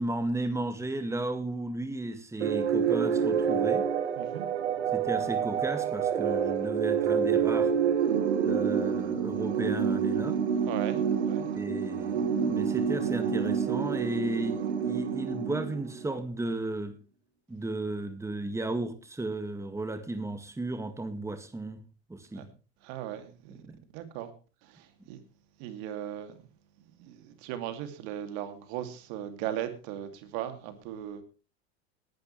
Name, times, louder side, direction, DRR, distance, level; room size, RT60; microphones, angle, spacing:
voice 1, 0.0-3.9 4.9-7.7 8.4-10.4 11.5-17.0 17.5-21.8 22.1-22.5 23.6-23.8, right 2 dB, 10° right, 1.9 m, -34 dB
sound 1, 2.4-16.1, right 7 dB, 90° right, 1.5 m, -28 dB
voice 2, 4.2-4.5 10.7-11.5 22.3-22.4 22.8-23.6 23.9-24.3 24.6-25.2 25.6-26.4 26.9-31.2, right 11 dB, 65° right, 2.6 m, -38 dB
18.5 x 11.5 x 3.2 m
hypercardioid pair, 85°, 33 cm